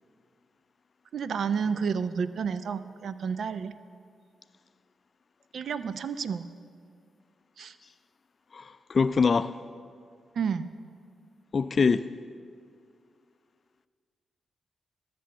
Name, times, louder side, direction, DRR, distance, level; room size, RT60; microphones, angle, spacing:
voice 1, 1.1-3.7 5.5-6.4 7.6-7.7 10.4-10.7, right 6 dB, 70° right, 0.5 m, -30 dB
voice 2, 8.5-9.6 11.5-12.1, left 5 dB, 50° left, 0.3 m, -24 dB
12.5 x 6.8 x 7.7 m
supercardioid pair, 55°, 0 cm